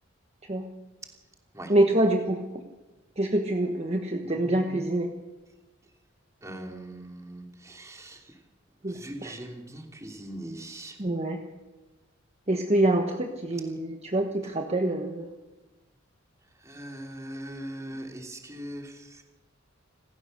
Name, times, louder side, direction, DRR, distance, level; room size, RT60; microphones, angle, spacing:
voice 1, 1.7-2.6 3.2-5.1 8.8-9.4 11.0-11.4 12.5-15.3, right 1 dB, 30° right, 4 dB, 1.3 m, -26 dB
voice 2, 6.4-8.4 8.8-11.0 16.6-19.2, right 1 dB, 15° right, 2 dB, 2.9 m, -41 dB
27.5 x 15.5 x 6.7 m, 1.1 s
head